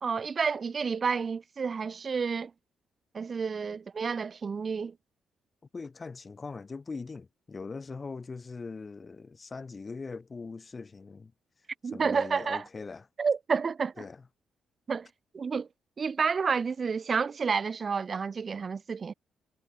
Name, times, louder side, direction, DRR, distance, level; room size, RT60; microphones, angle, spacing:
voice 1, 0.0-2.5 3.1-4.9 11.8-12.7 13.2-14.1 14.9-15.1 15.3-15.7 16.0-19.1, right 5 dB, 45° right, 0.4 m, -30 dB
voice 2, 5.7-11.3 11.9-13.1 14.0-14.2, left 4 dB, 35° left, 0.6 m, -41 dB
supercardioid pair, 65°, 0 cm